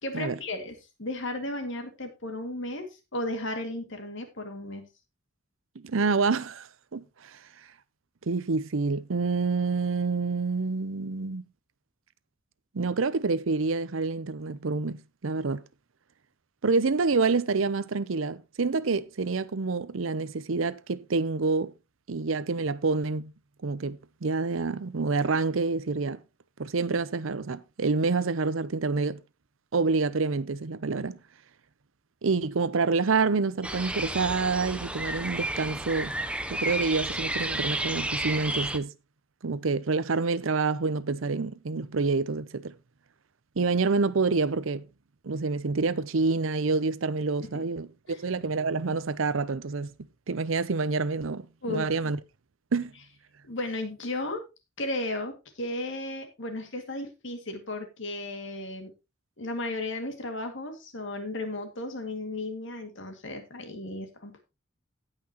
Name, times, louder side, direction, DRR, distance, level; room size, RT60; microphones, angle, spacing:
voice 1, 0.0-4.9 47.5-47.6 48.1-48.2 51.6-52.1 53.4-54.5 54.8-58.9 59.4-64.4, left 2 dB, 65° left, 2.2 m, -35 dB
voice 2, 5.8-7.4 8.3-11.5 12.7-15.6 16.6-21.7 22.1-23.3 23.6-26.2 26.6-29.2 29.7-31.2 32.2-36.1 36.5-38.9 39.4-42.7 43.6-44.8 45.2-49.9 50.3-52.2 52.7-52.9, right 4 dB, 75° right, 0.7 m, -27 dB
sound 1, 33.6-38.8, right 1 dB, 5° right, 0.7 m, -32 dB
17.5 x 5.9 x 3.0 m
head